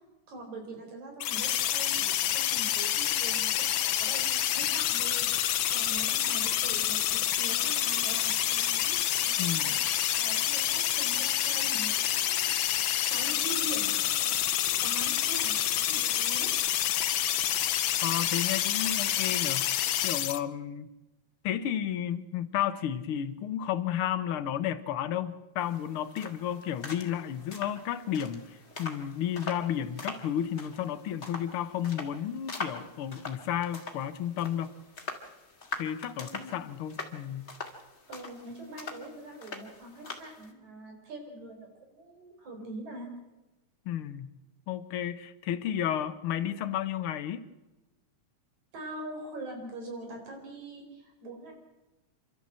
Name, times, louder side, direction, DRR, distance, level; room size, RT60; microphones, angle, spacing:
voice 1, 0.3-5.3 5.7-12.7 13.0-15.6 15.9-16.5 36.2-36.5 38.1-43.1 48.7-51.5, right 2 dB, 75° right, 5.9 m, -43 dB
sound 1, 1.2-20.4, left 12 dB, 80° left, 1.1 m, -28 dB
voice 2, 9.4-9.7 18.0-19.7 20.0-20.9 21.4-34.7 35.8-37.5 43.8-44.3 44.7-47.4, left 10 dB, 60° left, 1.7 m, -32 dB
sound 2, 25.6-40.5, left 3 dB, 25° left, 2.2 m, -43 dB
28.5 x 13.0 x 7.6 m
omnidirectional pair, 3.3 m